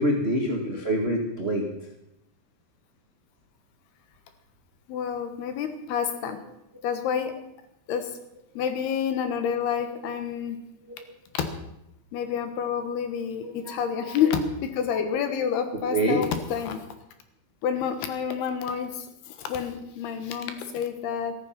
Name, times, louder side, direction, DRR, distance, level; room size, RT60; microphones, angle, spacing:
voice 1, 0.0-1.7 6.2-6.3 13.4-14.3 15.7-16.2, equal, 90° right, 1 dB, 0.5 m, -27 dB
voice 2, 4.9-6.4 6.8-7.3 7.9-8.1 8.5-10.6 11.3-11.5 12.1-16.8 17.6-21.3, left 7 dB, 80° left, 8 dB, 3.4 m, -28 dB
14.5 x 14.0 x 5.8 m, 0.82 s
omnidirectional pair, 4.6 m